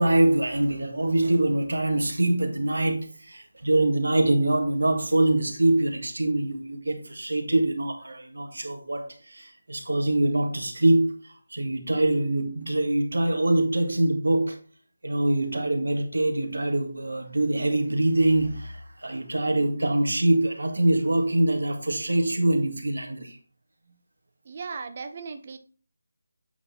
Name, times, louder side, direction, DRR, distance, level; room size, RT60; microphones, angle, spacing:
voice 1, 0.0-14.6 15.0-23.4, right 1 dB, 85° right, 1.8 m, -24 dB
voice 2, 24.5-25.6, right 5 dB, 40° right, 0.8 m, -37 dB
8.3 x 3.7 x 4.3 m
figure-of-eight pair, 165°, 0 cm